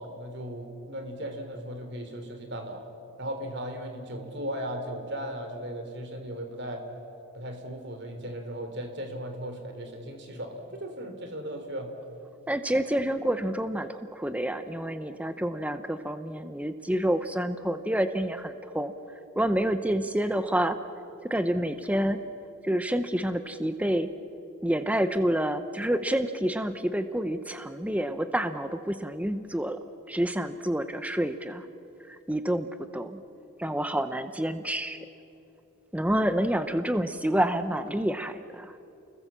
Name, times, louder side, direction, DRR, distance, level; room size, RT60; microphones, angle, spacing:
voice 1, 0.0-2.9 3.2-6.8 7.3-11.9, equal, 50° right, 6 dB, 3.1 m, -37 dB
voice 2, 12.5-18.9 19.4-20.8 21.2-22.2 22.6-24.1 24.6-29.8 30.1-31.7 32.1-33.2 33.6-35.0 35.9-38.8, right 1 dB, 5° right, 10 dB, 0.7 m, -28 dB
30.0 x 21.5 x 7.3 m, 2.8 s
head